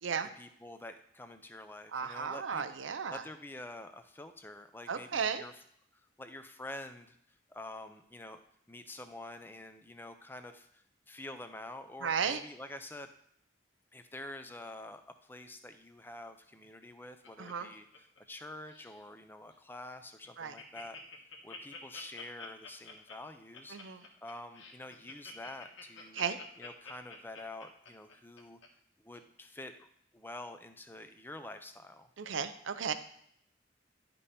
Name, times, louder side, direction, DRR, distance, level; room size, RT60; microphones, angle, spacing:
voice 1, 0.4-2.6 3.1-5.5 6.2-7.2 7.5-8.4 8.7-13.1 13.9-17.9 18.3-21.0 21.4-26.2 26.6-28.6 29.0-29.9 30.1-32.1, left 2 dB, 10° left, 8 dB, 0.5 m, -47 dB
voice 2, 1.9-3.2 4.9-5.4 12.0-12.4 17.4-17.7 20.4-20.5 23.7-24.0 26.1-26.4 32.2-32.9, right 6 dB, 85° right, 11 dB, 0.6 m, -34 dB
Laughter, 16.6-18.4 18.7-19.0 19.5-19.6 19.9-20.0 20.2-28.7 29.1-29.2, left 4 dB, 85° left, 1.6 m, -49 dB
11.0 x 5.3 x 4.3 m, 0.68 s
head